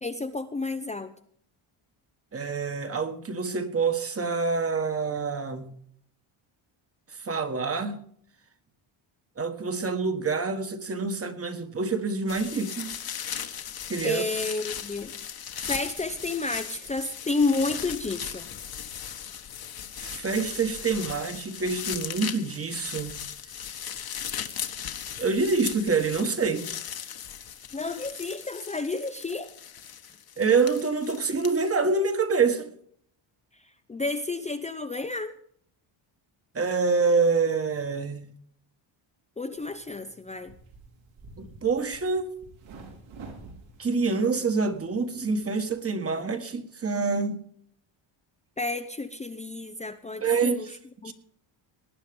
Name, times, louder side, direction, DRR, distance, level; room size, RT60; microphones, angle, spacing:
voice 1, 0.0-1.1 14.0-15.1 15.7-18.5 27.7-29.5 33.9-35.3 39.4-40.5 48.6-50.7 51.0-51.1, left 3 dB, 15° left, 0.8 m, -31 dB
voice 2, 2.3-5.7 7.1-8.0 9.4-13.0 13.9-14.2 20.0-23.2 23.4-23.7 25.2-26.7 30.4-32.7 36.5-38.3 41.4-42.3 43.8-47.4 50.2-50.8 51.0-51.1, right 4 dB, 30° right, 1.7 m, -26 dB
sound 1, 12.3-31.7, left 9 dB, 50° left, 1.5 m, -38 dB
sound 2, 39.5-45.8, right 3 dB, 80° right, 4.7 m, -49 dB
19.0 x 9.2 x 5.3 m
cardioid pair, 110°, 48 cm